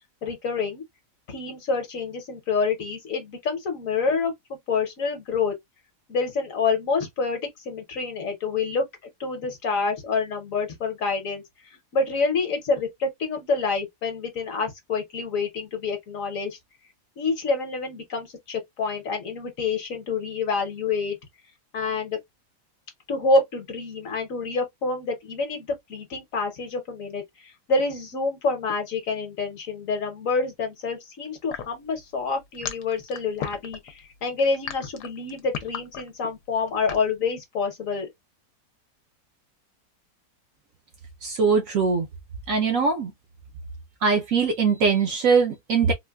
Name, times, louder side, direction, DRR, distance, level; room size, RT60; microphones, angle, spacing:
voice 1, 0.2-0.8 1.3-4.3 4.7-5.6 6.1-8.8 9.2-11.4 11.9-16.6 17.2-21.2 21.7-22.2 23.1-38.1, left 4 dB, 60° left, 1.2 m, -27 dB
sound 1, 31.5-37.1, left 8 dB, 75° left, 1.2 m, -35 dB
voice 2, 41.2-42.1 42.5-43.1 44.0-45.9, right 5 dB, 65° right, 0.9 m, -21 dB
3.8 x 2.2 x 2.2 m
omnidirectional pair, 1.8 m